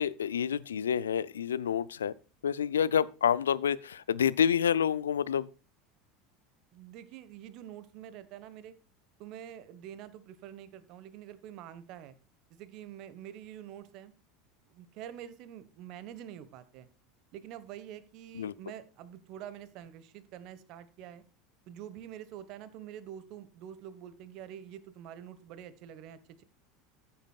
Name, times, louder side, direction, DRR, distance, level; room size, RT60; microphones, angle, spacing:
voice 1, 0.0-2.1 2.4-5.5 18.3-18.5, left 8 dB, 80° left, 0.5 m, -28 dB
voice 2, 6.7-8.7 9.2-12.1 12.5-14.1 14.7-16.9 17.3-21.2 21.7-26.4, right 10 dB, 55° right, 1.4 m, -46 dB
14.0 x 8.8 x 2.4 m
hypercardioid pair, 80°, 0 cm